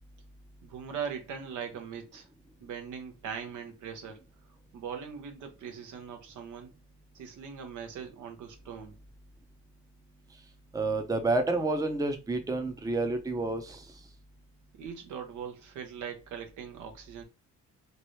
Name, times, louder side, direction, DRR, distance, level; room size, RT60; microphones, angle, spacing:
voice 1, 0.6-2.3 2.6-4.3 4.7-6.7 7.1-9.0 14.8-17.2, right 7 dB, 80° right, 0.9 m, -40 dB
voice 2, 10.7-13.9, right 2 dB, 10° right, 0.6 m, -29 dB
2.9 x 2.6 x 3.1 m
cardioid pair, 90°, 30 cm